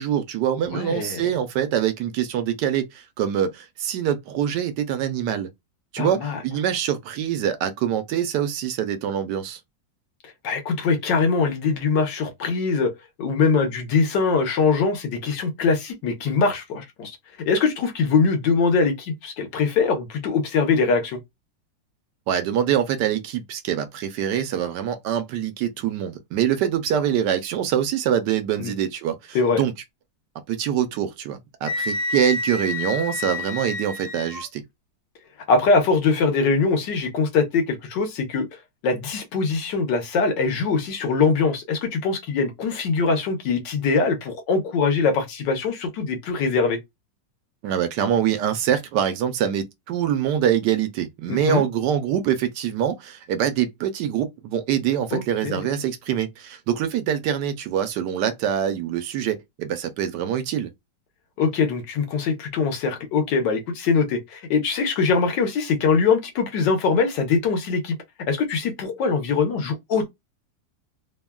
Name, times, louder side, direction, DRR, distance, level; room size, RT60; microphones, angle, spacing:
voice 1, 0.0-5.5 5.9-9.6 22.3-29.7 30.5-34.6 47.6-60.7, right 9 dB, 75° right, 1.1 m, -24 dB
voice 2, 0.7-1.2 6.0-6.4 10.4-12.9 13.2-17.2 17.4-21.2 28.6-28.7 29.3-29.6 35.5-38.5 38.8-46.8 51.3-51.7 55.1-55.6 61.4-67.9 68.3-70.1, left 4 dB, 75° left, 1.5 m, -22 dB
Wind instrument woodwind instrument, 31.6-34.5, left 3 dB, 60° left, 0.9 m, -29 dB
3.4 x 2.3 x 2.2 m
omnidirectional pair, 2.0 m